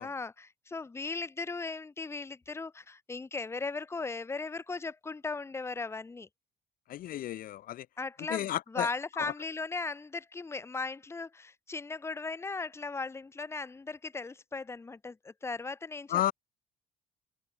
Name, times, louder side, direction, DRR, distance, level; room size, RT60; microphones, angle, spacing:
voice 1, 0.0-6.3 8.0-16.2, left 4 dB, 15° left, 0.8 m, -37 dB
voice 2, 6.9-7.9 8.3-8.9 9.2-9.3 16.1-16.3, left 13 dB, 55° left, 0.5 m, -32 dB
open air
cardioid pair, 110°, 17 cm